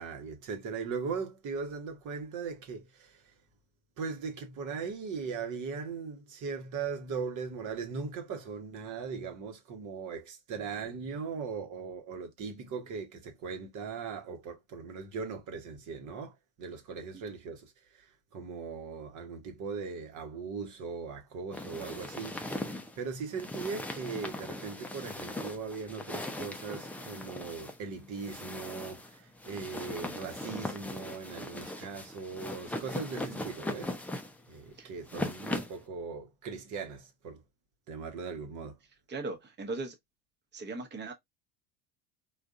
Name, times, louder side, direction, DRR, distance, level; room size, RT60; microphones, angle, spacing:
voice 1, 0.0-3.2 4.0-22.7 23.0-34.0 34.5-37.4 37.9-38.8, right 5 dB, 45° right, 1.0 m, -39 dB
sound 1, 21.5-35.8, left 1 dB, 5° left, 0.4 m, -39 dB
voice 2, 34.7-35.3 39.1-40.0 40.5-41.1, right 3 dB, 25° right, 1.0 m, -39 dB
3.5 x 2.5 x 2.5 m
hypercardioid pair, 85°, 40 cm